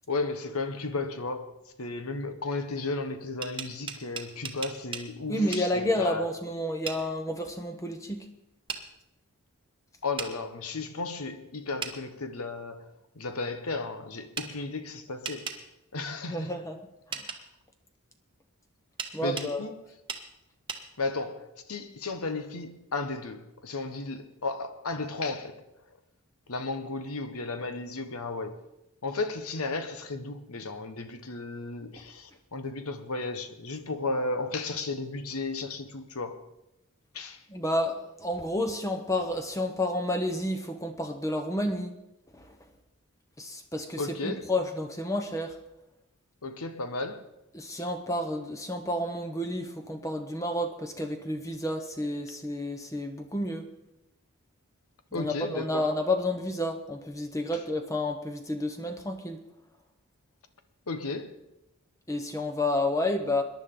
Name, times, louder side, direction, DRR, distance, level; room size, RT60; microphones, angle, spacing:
voice 1, 0.1-6.3 10.0-15.5 15.9-16.5 17.2-17.3 19.2-19.7 21.0-25.6 26.5-28.5 29.0-36.4 37.1-37.4 44.0-44.4 46.4-47.3 55.1-55.8 60.9-61.3, left 3 dB, 80° left, 1.2 m, -34 dB
sound 1, 3.2-5.1 5.5-5.7 6.9-7.0 8.7-8.8 10.2-10.3 11.8-12.0 14.4-14.5 15.2-15.6 17.1-17.4 19.0-19.5 20.1-20.2 20.7-20.8, right 5 dB, 20° right, 1.0 m, -36 dB
voice 2, 5.3-8.3 16.3-16.8 17.1-17.2 19.1-19.7 37.5-41.9 42.3-42.5 43.4-45.6 47.5-53.7 55.1-59.4 62.1-63.4, left 1 dB, 15° left, 0.8 m, -30 dB
21.5 x 11.0 x 3.8 m
head